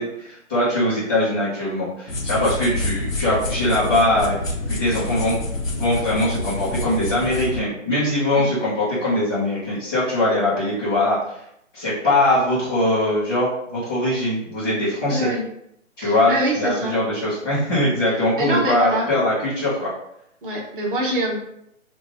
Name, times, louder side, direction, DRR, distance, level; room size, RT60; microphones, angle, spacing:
voice 1, 0.0-4.3 4.7-5.4 5.7-11.4 11.7-15.3 16.0-19.9, left 1 dB, 15° left, -14 dB, 0.9 m, -21 dB
sound 1, 2.1-7.6, left 2 dB, 85° left, 0.8 m, -27 dB
voice 2, 15.1-15.4 16.0-16.9 18.4-19.1 20.4-21.4, right 2 dB, 40° right, -2 dB, 1.0 m, -24 dB
3.0 x 2.5 x 3.3 m, 0.76 s
figure-of-eight pair, 150°, 39 cm